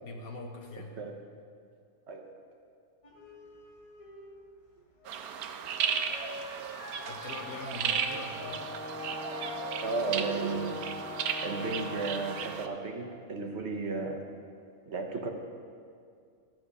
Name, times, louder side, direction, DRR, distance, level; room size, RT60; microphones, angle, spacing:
voice 1, 0.0-0.9 7.1-8.7, left 2 dB, 75° left, 2 dB, 1.6 m, -42 dB
sound 1, 3.0-9.7, left 1 dB, 25° left, 1.0 m, -46 dB
sound 2, 5.0-12.7, right 7 dB, 85° right, 1.1 m, -35 dB
Brass instrument, 8.3-12.7, left 3 dB, 50° left, 3.5 m, -40 dB
voice 2, 9.8-10.8 11.4-14.2 14.9-15.3, right 4 dB, 55° right, 3 dB, 1.0 m, -34 dB
12.5 x 7.8 x 4.9 m, 2.3 s
omnidirectional pair, 1.5 m